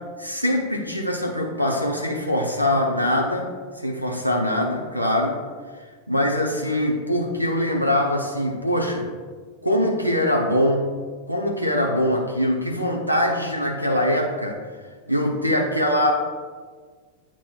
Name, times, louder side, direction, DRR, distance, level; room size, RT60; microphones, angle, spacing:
voice 1, 0.2-3.5 3.8-5.4 6.1-9.1 9.6-10.9 11.3-14.6 15.1-16.1, left 1 dB, 90° left, 0 dB, 0.7 m, -23 dB
8.7 x 3.0 x 4.4 m, 1.5 s
figure-of-eight pair, 90°, 0 cm